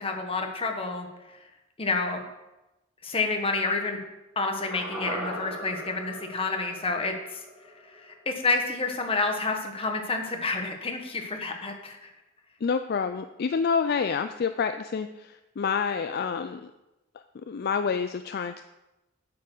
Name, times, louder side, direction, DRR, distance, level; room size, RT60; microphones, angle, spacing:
voice 1, 0.0-1.5 1.8-2.2 3.0-4.0 4.3-7.4 7.8-12.1, left 3 dB, 25° left, 3 dB, 1.3 m, -29 dB
sound 1, 4.7-9.0 9.2-9.3, equal, 5° right, 4.2 m, -39 dB
voice 2, 12.6-16.7 17.3-18.6, left 6 dB, 50° left, 9 dB, 0.4 m, -28 dB
8.3 x 6.9 x 6.1 m, 0.98 s
head